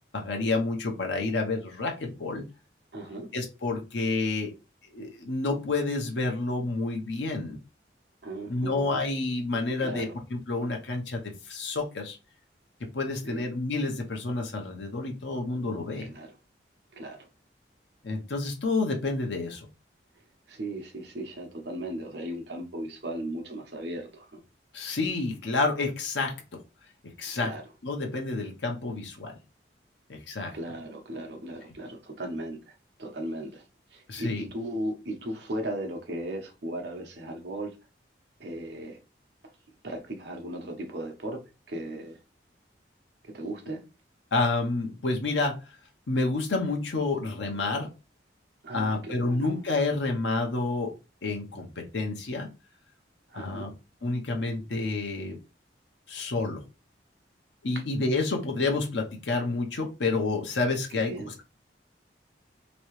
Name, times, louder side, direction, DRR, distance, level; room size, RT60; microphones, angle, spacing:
voice 1, 0.1-2.4 3.3-4.5 4.9-7.6 8.5-12.2 12.8-16.1 18.0-19.7 24.7-26.6 27.2-27.6 27.8-29.3 30.1-30.5 34.1-34.5 44.3-45.6 46.1-47.9 48.7-50.9 51.2-52.5 53.3-53.7 54.0-55.4 56.1-56.6 57.6-61.1, left 3 dB, 75° left, 0.7 m, -29 dB
voice 2, 2.9-3.3 8.2-9.1 9.8-10.1 13.2-13.4 16.0-16.3 16.9-17.3 20.5-24.4 27.3-27.6 30.5-32.6 33.0-33.6 33.9-37.7 38.4-39.0 39.8-41.4 41.7-42.2 43.3-43.8 48.6-49.6 53.3-53.7 60.9-61.3, right 1 dB, 65° right, 0.9 m, -37 dB
3.0 x 2.8 x 3.1 m
head